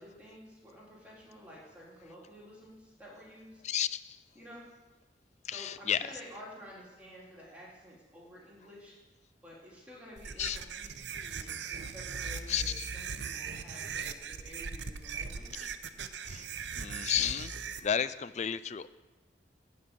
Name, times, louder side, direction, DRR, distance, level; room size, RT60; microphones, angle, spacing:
voice 1, 0.0-3.6 4.4-4.7 5.5-8.9 9.4-15.7, equal, 10° right, -6 dB, 3.7 m, -51 dB
voice 2, 3.6-4.2 5.4-6.0 10.4-10.6 12.5-12.9 16.2-16.5 16.8-17.6 17.8-18.9, left 9 dB, 40° left, 15 dB, 0.4 m, -32 dB
sound 1, 10.2-17.8, right 6 dB, 85° right, 0.7 m, -39 dB
12.5 x 5.3 x 8.9 m, 1.2 s
head